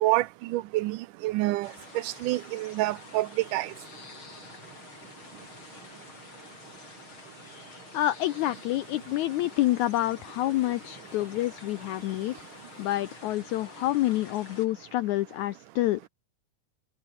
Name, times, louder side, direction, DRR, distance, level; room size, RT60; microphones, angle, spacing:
voice 1, 0.0-1.7 2.0-3.7, right 17 dB, 80° right, 2.0 m, -27 dB
sound 1, 1.6-14.7, left 3 dB, 35° left, 5.5 m, -48 dB
voice 2, 7.9-12.3 12.8-16.1, left 15 dB, 90° left, 1.7 m, -28 dB
omnidirectional pair, 4.1 m